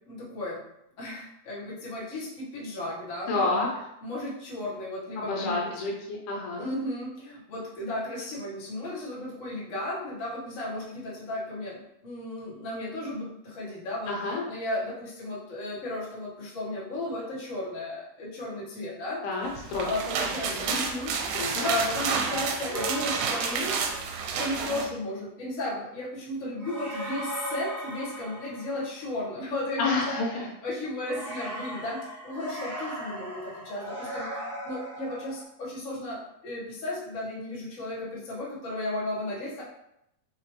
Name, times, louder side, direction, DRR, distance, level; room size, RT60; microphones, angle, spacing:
voice 1, 0.1-0.6 1.0-3.6 4.0-5.7 6.6-19.2 19.8-23.8 24.4-39.6, left 1 dB, 40° left, -7 dB, 1.1 m, -34 dB
voice 2, 3.3-3.7 5.2-6.7 14.1-14.4 19.2-19.9 20.5-20.8 21.3-21.7 29.8-30.5, left 3 dB, 85° left, -1 dB, 2.4 m, -29 dB
sound 1, 19.6-24.9, right 5 dB, 85° right, 2.1 m, -30 dB
sound 2, 22.7-24.5 26.6-29.1 31.0-35.4, right 1 dB, 30° right, 0.8 m, -37 dB
5.0 x 2.9 x 3.1 m, 0.81 s
omnidirectional pair, 3.5 m